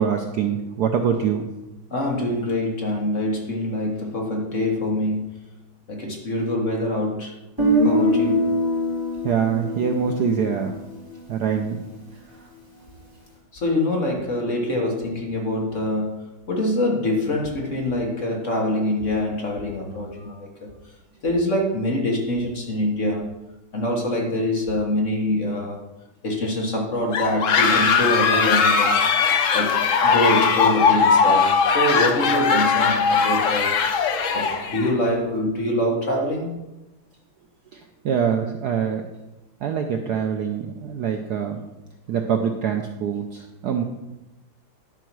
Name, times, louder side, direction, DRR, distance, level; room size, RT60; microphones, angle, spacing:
voice 1, 0.0-1.5 9.2-10.8 11.3-11.8 37.7-39.0 39.6-41.6 42.1-43.8, right 7 dB, 70° right, 4 dB, 1.0 m, -24 dB
voice 2, 1.9-5.3 5.9-7.3 7.8-8.5 13.5-16.2 16.5-20.7 21.2-23.2 23.7-25.8 26.2-29.0 29.5-29.8 30.0-33.8 34.3-36.5, left 1 dB, 40° left, 0 dB, 1.6 m, -24 dB
Guitar, 7.6-11.5, equal, 10° right, 3.0 m, -23 dB
sound 1, 27.1-34.9, left 5 dB, 65° left, 0.7 m, -19 dB
11.0 x 4.5 x 6.1 m, 1.0 s
omnidirectional pair, 2.3 m